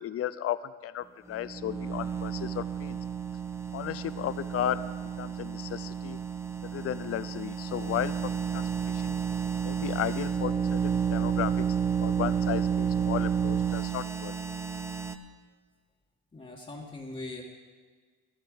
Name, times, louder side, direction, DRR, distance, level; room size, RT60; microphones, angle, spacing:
voice 1, 0.0-3.0 3.7-4.8 5.2-6.2 6.6-8.7 8.9-9.2 9.6-11.7 12.0-14.3, left 11 dB, 50° left, 15 dB, 0.5 m, -34 dB
sound 1, 1.3-15.1, right 7 dB, 10° right, 0.8 m, -31 dB
voice 2, 16.3-17.4, left 2 dB, 20° left, -3 dB, 1.6 m, -40 dB
11.5 x 8.8 x 7.7 m, 1.6 s
cardioid pair, 90°, 30 cm